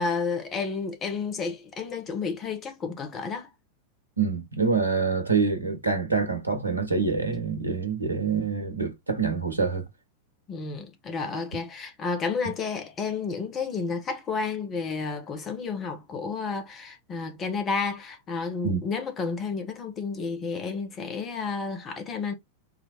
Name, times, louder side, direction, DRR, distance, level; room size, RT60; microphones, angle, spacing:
voice 1, 0.0-3.5 10.5-22.3, left 4 dB, 25° left, 1.4 m, -31 dB
voice 2, 4.2-9.8 18.6-18.8, right 5 dB, 85° right, 1.3 m, -26 dB
5.0 x 3.1 x 3.0 m
figure-of-eight pair, 90°, 0 cm